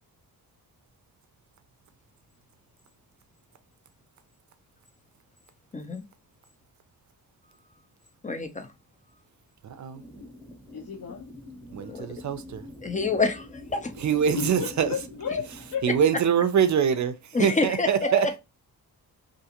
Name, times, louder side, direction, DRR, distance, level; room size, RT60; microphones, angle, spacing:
voice 1, 5.7-6.0 8.2-8.7 11.9-12.1 12.8-13.9 17.3-17.9, left 4 dB, 20° left, 0.5 m, -27 dB
voice 2, 9.6-10.0 11.7-12.7 14.0-14.9 15.8-18.4, right 8 dB, 50° right, 0.5 m, -24 dB
sound 1, 9.9-16.1, left 1 dB, 5° right, 0.9 m, -45 dB
voice 3, 10.7-11.3 14.3-15.8 17.7-18.2, left 6 dB, 60° left, 0.8 m, -33 dB
2.5 x 2.4 x 2.8 m
wide cardioid pair, 105°, 38 cm